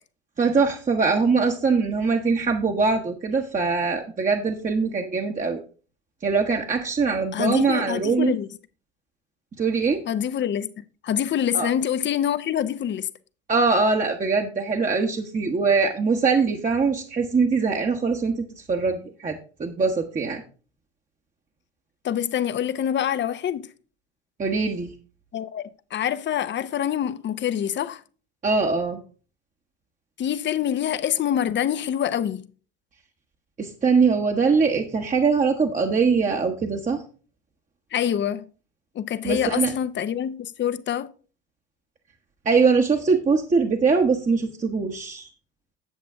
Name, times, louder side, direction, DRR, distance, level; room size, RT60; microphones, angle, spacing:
voice 1, 0.4-5.6 6.2-8.3 9.6-10.0 11.5-11.7 13.5-20.4 24.4-24.9 28.4-29.0 33.6-37.0 39.2-39.7 42.4-45.3, right 4 dB, 25° right, 1.1 m, -22 dB
voice 2, 7.3-8.5 10.1-13.1 22.0-23.7 25.3-28.0 30.2-32.5 37.9-38.4 38.9-41.1, left 9 dB, 35° left, 0.7 m, -26 dB
9.1 x 7.5 x 3.6 m
hypercardioid pair, 65°, 32 cm